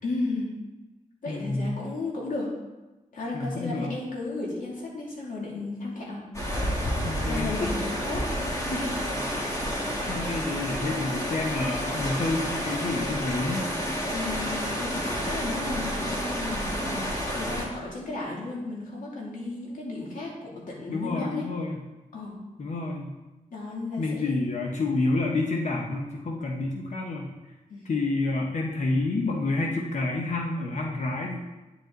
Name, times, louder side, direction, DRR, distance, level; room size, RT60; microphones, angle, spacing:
voice 1, 0.0-0.5 1.2-2.5 3.1-6.2 7.3-9.0 14.1-17.0 17.3-21.4 22.1-22.3 23.5-24.7 27.7-27.9, left 2 dB, 75° left, -4 dB, 2.7 m, -34 dB
voice 2, 1.3-1.7 3.3-3.9 7.1-7.6 10.1-13.6 20.9-21.8 22.6-23.1 24.0-27.3 27.8-31.4, left 2 dB, 60° left, 0 dB, 1.0 m, -29 dB
sound 1, 6.3-17.7, equal, 20° left, 2.0 m, -30 dB
9.6 x 7.8 x 3.9 m, 1.1 s
wide cardioid pair, 105°, 14 cm